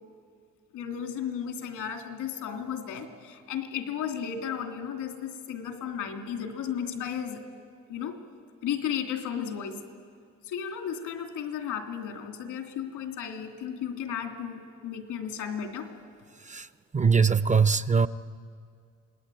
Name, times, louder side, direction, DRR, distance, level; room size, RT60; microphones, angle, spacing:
voice 1, 0.7-7.4 7.9-8.2 8.6-9.8 10.4-15.9, left 8 dB, 90° left, 4 dB, 2.8 m, -34 dB
voice 2, 16.9-18.1, right 5 dB, 25° right, 14 dB, 0.6 m, -22 dB
28.0 x 19.0 x 9.1 m, 2.2 s
cardioid pair, 90°, 30 cm